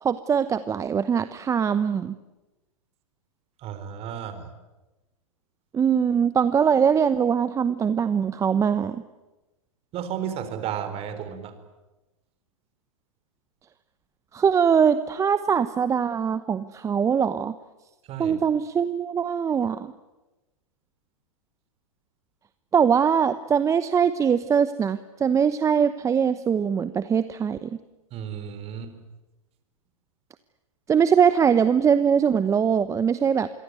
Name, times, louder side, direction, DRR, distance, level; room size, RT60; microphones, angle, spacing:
voice 1, 0.0-2.2 5.7-9.0 14.3-17.5 18.2-19.9 22.7-27.8 30.9-33.5, right 7 dB, 15° right, 13 dB, 0.9 m, -22 dB
voice 2, 3.6-4.5 9.9-11.5 18.1-18.4 28.1-28.9, right 9 dB, 35° right, 10 dB, 4.2 m, -33 dB
27.0 x 23.0 x 9.6 m, 1.1 s
hypercardioid pair, 110°, 17 cm